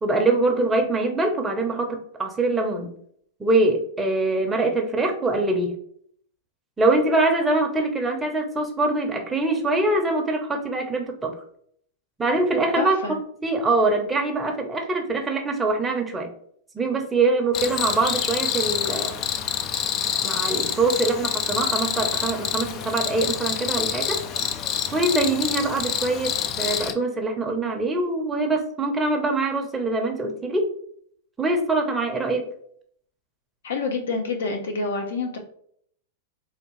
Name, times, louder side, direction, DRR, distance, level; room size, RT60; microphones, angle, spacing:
voice 1, 0.0-2.9 3.4-5.7 6.8-11.4 12.2-16.3 16.7-19.2 20.2-24.2 24.9-30.7 31.4-32.5, right 2 dB, 10° right, 2 dB, 0.7 m, -23 dB
voice 2, 12.8-13.1 33.6-35.4, left 4 dB, 85° left, 4 dB, 0.8 m, -27 dB
Cricket, 17.5-26.9, left 8 dB, 35° left, 0.4 m, -27 dB
3.5 x 2.3 x 3.1 m, 0.64 s
hypercardioid pair, 120°, 0 cm